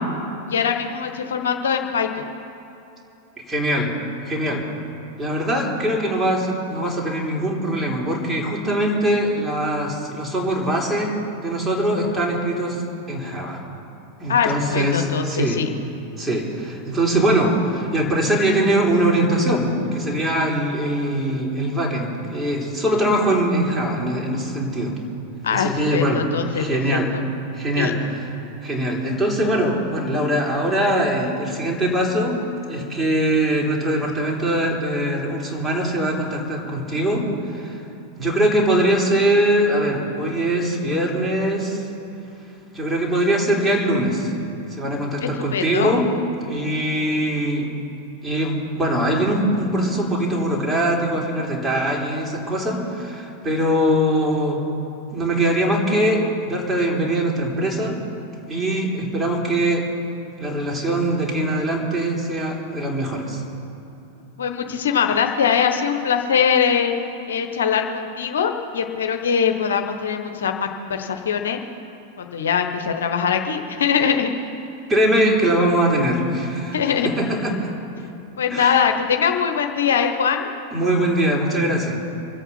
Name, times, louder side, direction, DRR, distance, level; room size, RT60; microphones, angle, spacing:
voice 1, 0.5-2.1 14.3-15.7 25.4-26.8 27.1-27.2 27.8-27.9 45.2-45.9 64.4-66.9 67.3-71.6 72.2-74.3 76.7-77.1 78.4-80.5, left 7 dB, 65° left, 5 dB, 1.0 m, -22 dB
voice 2, 3.5-3.9 4.3-4.6 5.2-13.6 14.2-15.6 16.2-24.9 25.5-26.3 26.5-27.1 27.5-28.3 28.6-32.4 32.7-37.8 38.2-41.9 42.7-44.3 44.7-46.1 46.5-47.7 48.2-54.6 55.1-58.0 58.5-59.9 60.4-63.4 74.9-77.7 78.5-78.8 80.7-82.0, right 1 dB, 15° right, -2 dB, 3.5 m, -22 dB
25.0 x 8.4 x 5.6 m, 2.9 s
figure-of-eight pair, 90°, 0 cm